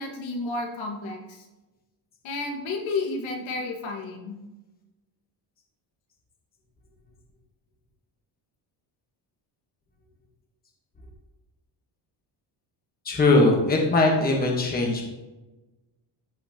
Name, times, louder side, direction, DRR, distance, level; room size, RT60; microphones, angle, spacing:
voice 1, 0.0-1.5 2.2-4.4, left 3 dB, 75° left, 1 dB, 1.8 m, -31 dB
voice 2, 13.0-15.0, left 2 dB, 20° left, 0 dB, 1.2 m, -20 dB
14.0 x 5.6 x 2.9 m, 1.1 s
cardioid pair, 180°, 46 cm